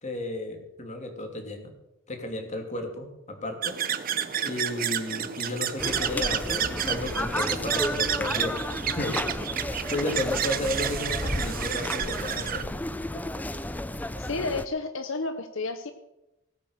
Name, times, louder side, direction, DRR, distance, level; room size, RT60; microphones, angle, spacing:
voice 1, 0.0-1.7 2.1-3.8 4.4-8.6 8.9-9.3 9.9-12.7, left 1 dB, 35° left, 4 dB, 2.9 m, -33 dB
sound 1, 3.6-12.6, right 9 dB, 45° right, 0.8 m, -30 dB
sound 2, 5.8-14.7, left 1 dB, 10° left, 0.6 m, -32 dB
voice 2, 14.2-15.9, left 3 dB, 80° left, 9 dB, 1.0 m, -31 dB
17.5 x 8.7 x 6.6 m, 0.91 s
head